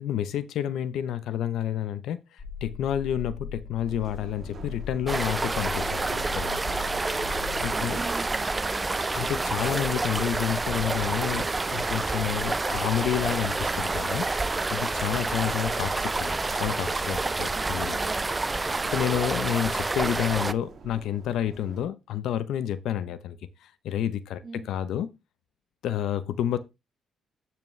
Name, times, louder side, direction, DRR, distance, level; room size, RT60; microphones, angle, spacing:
voice 1, 0.0-6.6 7.3-8.0 9.1-14.3 14.7-18.0 18.6-25.1 25.8-26.6, left 10 dB, 80° left, 0.7 m, -30 dB
sound 1, 2.4-7.7, left 6 dB, 20° left, 4.3 m, -39 dB
sound 2, 3.9-21.9, right 5 dB, 55° right, 2.3 m, -46 dB
sound 3, 5.1-20.5, right 3 dB, 20° right, 0.5 m, -28 dB
voice 2, 7.6-9.1 15.1-15.5 17.3-18.3 19.3-19.6 24.4-24.7, right 4 dB, 35° right, 1.2 m, -43 dB
10.5 x 5.9 x 3.2 m
cardioid pair, 90°, 0 cm